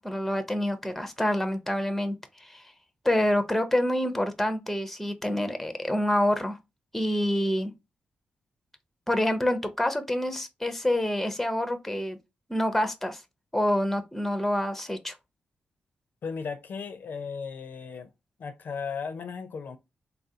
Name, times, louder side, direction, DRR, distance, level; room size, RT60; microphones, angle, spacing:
voice 1, 0.0-2.6 3.0-6.6 6.9-7.7 9.1-12.2 12.5-13.2 13.5-15.1, left 1 dB, 5° left, 0.5 m, -27 dB
voice 2, 16.2-18.1 18.4-19.8, left 5 dB, 65° left, 0.4 m, -36 dB
3.5 x 2.4 x 2.7 m
cardioid pair, 95°, 4 cm